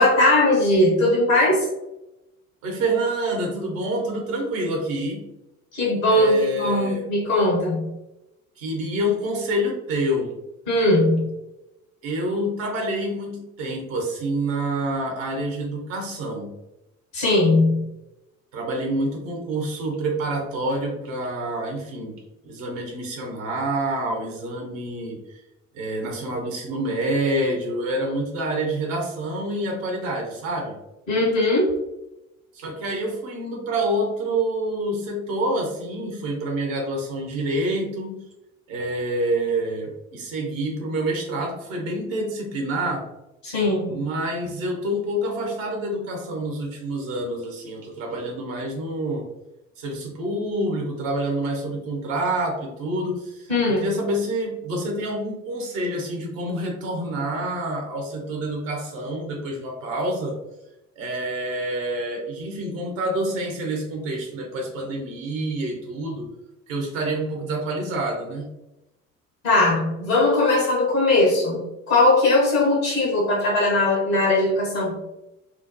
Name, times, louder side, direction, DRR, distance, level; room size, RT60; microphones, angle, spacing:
voice 1, 0.0-1.6 5.7-7.9 10.7-11.3 17.1-17.9 31.1-31.7 43.4-43.9 53.5-53.8 69.4-75.0, left 2 dB, 80° left, -5 dB, 1.3 m, -19 dB
voice 2, 2.6-5.3 6.1-7.1 8.6-10.4 12.0-16.5 18.5-25.4 25.7-30.8 32.5-38.3 38.7-43.1 43.9-49.3 49.8-60.4 61.0-66.3 66.7-68.5, right 1 dB, 75° right, 1 dB, 1.0 m, -27 dB
4.3 x 2.1 x 2.7 m, 0.94 s
figure-of-eight pair, 45°, 40 cm